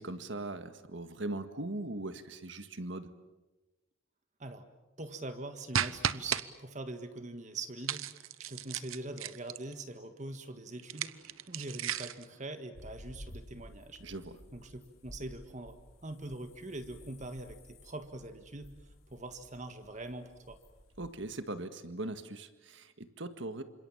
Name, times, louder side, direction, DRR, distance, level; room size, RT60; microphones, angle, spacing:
voice 1, 0.0-3.1 14.0-14.3 21.0-23.6, right 2 dB, 60° right, 9 dB, 1.8 m, -40 dB
voice 2, 5.0-11.1 11.5-14.0 14.5-18.7 19.1-20.6, right 2 dB, 35° right, 8 dB, 1.7 m, -43 dB
sound 1, 5.7-6.4 7.8-9.7 10.8-12.3, right 9 dB, 90° right, 0.9 m, -34 dB
sound 2, 12.7-21.2, equal, 90° left, 5.1 m, -54 dB
28.5 x 26.5 x 7.3 m, 1.1 s
head